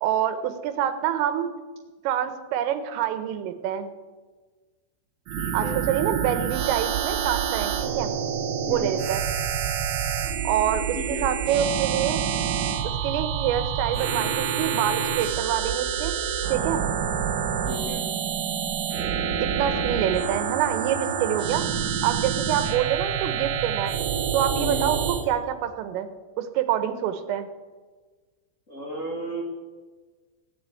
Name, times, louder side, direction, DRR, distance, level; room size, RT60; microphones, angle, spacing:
voice 1, 0.0-1.5 2.1-3.9 5.5-8.1 8.7-9.3 10.5-12.2 13.0-16.1 16.5-16.8 19.4-23.9 24.3-26.1 26.4-27.5, right 10 dB, 85° right, 9 dB, 3.7 m, -26 dB
voice 2, 5.3-5.8 8.6-8.9 10.9-11.3 17.6-18.0 24.5-24.9 28.7-29.4, equal, 45° left, -3 dB, 0.9 m, -34 dB
sound 1, 5.3-25.2, right 8 dB, 65° right, 2.3 m, -27 dB
16.5 x 8.1 x 9.6 m, 1.4 s
omnidirectional pair, 5.8 m